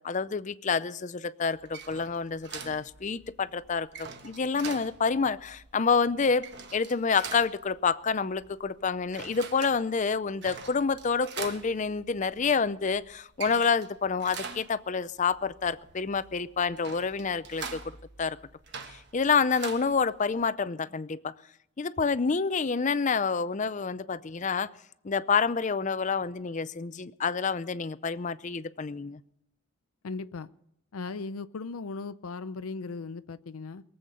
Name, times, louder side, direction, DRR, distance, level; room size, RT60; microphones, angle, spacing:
voice 1, 0.0-17.8 18.2-18.4 18.9-21.3 21.8-24.7 25.0-29.2, left 5 dB, 35° left, 16 dB, 0.5 m, -28 dB
sound 1, 1.5-20.5, right 5 dB, 50° right, 1.3 m, -44 dB
voice 2, 30.0-30.5 30.9-33.8, left 4 dB, 80° left, 13 dB, 0.5 m, -37 dB
22.5 x 7.9 x 6.8 m, 0.77 s
head